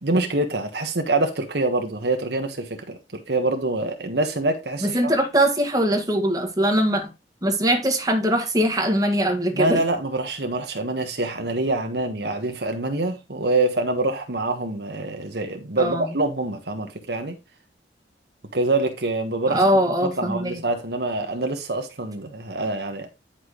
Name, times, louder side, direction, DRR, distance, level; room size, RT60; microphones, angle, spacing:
voice 1, 0.0-5.1 9.5-17.4 18.5-19.6 20.2-23.1, right 2 dB, 65° right, 1.4 m, -25 dB
voice 2, 4.8-7.1 7.4-9.8 15.8-16.1 19.5-20.6, right 1 dB, 20° right, 1.8 m, -21 dB
9.9 x 6.0 x 3.1 m
head